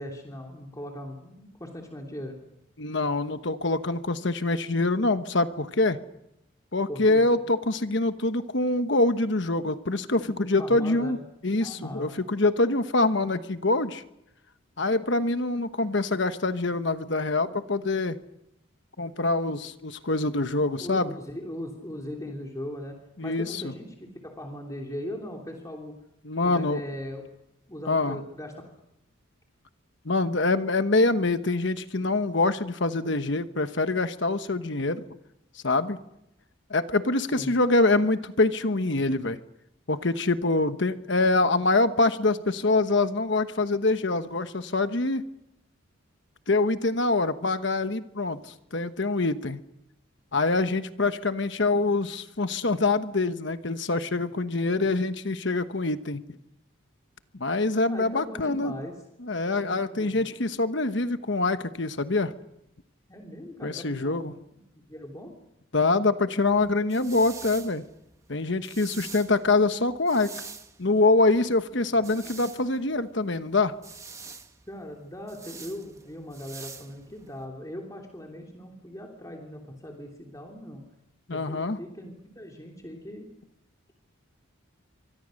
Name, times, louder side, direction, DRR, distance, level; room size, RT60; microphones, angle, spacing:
voice 1, 0.0-2.4 6.9-7.4 10.1-10.2 10.6-11.2 11.6-12.2 20.8-22.9 23.2-25.9 26.4-27.2 27.7-28.5 37.3-37.5 57.9-58.9 59.5-60.3 63.1-64.4 64.9-65.3 71.9-72.4 74.7-80.8 81.3-83.3, left 1 dB, 15° left, 0 dB, 3.1 m, -39 dB
voice 2, 2.8-6.0 6.7-11.2 11.4-14.0 14.8-18.2 19.0-21.1 23.2-23.7 26.2-26.8 27.9-28.2 30.0-35.0 35.6-36.0 36.7-39.4 39.9-45.2 46.5-49.6 50.3-56.2 57.4-58.7 59.2-62.3 63.6-64.4 65.7-67.8 68.3-70.3 70.8-73.7 81.3-81.8, left 2 dB, 60° left, 10 dB, 1.1 m, -25 dB
sound 1, 66.5-77.4, right 5 dB, 15° right, 1.2 m, -46 dB
27.5 x 24.5 x 6.5 m, 0.84 s
head